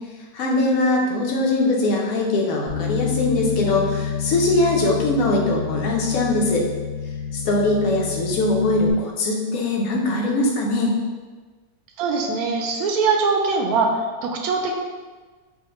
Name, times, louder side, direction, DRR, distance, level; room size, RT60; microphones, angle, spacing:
voice 1, 0.3-6.6 7.3-11.0, left 2 dB, 65° left, -2 dB, 1.1 m, -21 dB
Bass guitar, 2.7-8.9, left 7 dB, 35° left, 1.1 m, -28 dB
voice 2, 12.0-14.7, right 4 dB, 70° right, 1 dB, 1.0 m, -22 dB
4.9 x 2.1 x 2.9 m, 1.4 s
omnidirectional pair, 1.7 m